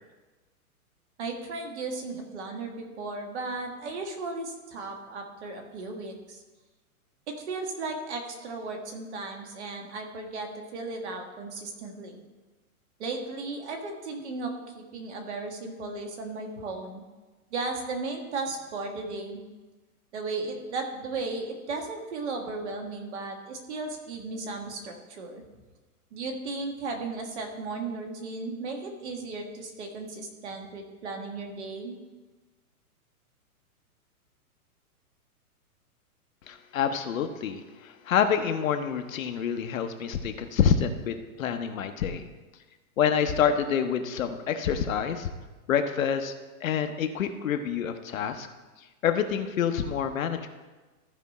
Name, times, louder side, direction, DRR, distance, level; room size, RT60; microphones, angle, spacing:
voice 1, 1.2-6.4 7.3-12.2 13.0-17.0 17.5-19.4 20.1-25.4 26.1-32.0, right 3 dB, 50° right, 3 dB, 1.7 m, -35 dB
voice 2, 36.5-42.2 43.0-45.3 45.7-46.3 46.6-48.5 49.0-50.5, left 8 dB, 60° left, 7 dB, 1.0 m, -27 dB
14.5 x 5.1 x 4.2 m, 1.2 s
hypercardioid pair, 165°, 45 cm